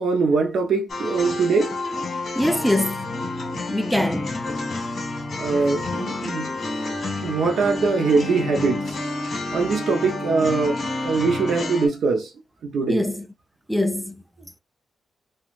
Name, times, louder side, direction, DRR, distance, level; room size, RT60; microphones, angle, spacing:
voice 1, 0.0-1.7 5.4-6.5 7.2-8.9 9.5-12.3 12.6-13.0, right 4 dB, 80° right, 0.7 m, -22 dB
sound 1, 0.9-11.9, left 2 dB, 55° left, 1.4 m, -29 dB
voice 2, 2.3-3.1 3.7-4.3 12.9-13.2 13.7-14.1, left 1 dB, ahead, 0.3 m, -23 dB
3.2 x 2.3 x 2.5 m
wide cardioid pair, 150°, 0 cm